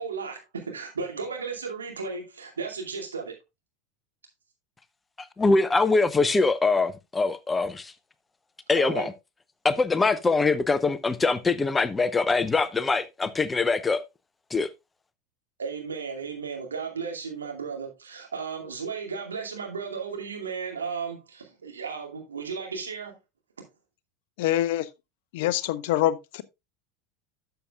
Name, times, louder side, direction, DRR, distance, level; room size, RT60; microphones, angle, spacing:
voice 1, 0.0-3.4 8.7-9.1 15.6-23.2, right 5 dB, 75° right, 2.4 m, -34 dB
voice 2, 5.2-7.9 8.7-9.1 9.6-14.0 14.5-14.7, left 3 dB, 15° left, 0.7 m, -23 dB
voice 3, 24.4-24.9 25.3-26.4, left 13 dB, 55° left, 0.5 m, -25 dB
12.5 x 6.8 x 2.3 m
figure-of-eight pair, 80°, 0 cm